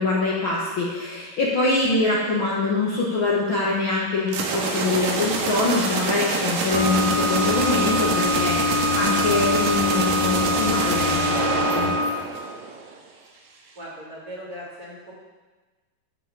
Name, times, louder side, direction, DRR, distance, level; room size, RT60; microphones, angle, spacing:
voice 1, 0.0-11.9, left 3 dB, 85° left, -5 dB, 1.1 m, -24 dB
sound 1, 4.3-12.9, right 4 dB, 70° right, 2.9 m, -26 dB
sound 2, 6.7-12.0, left 2 dB, 55° left, 4.6 m, -24 dB
voice 2, 13.7-15.1, equal, 25° right, -7 dB, 2.9 m, -38 dB
11.5 x 5.6 x 7.5 m, 1.3 s
omnidirectional pair, 4.7 m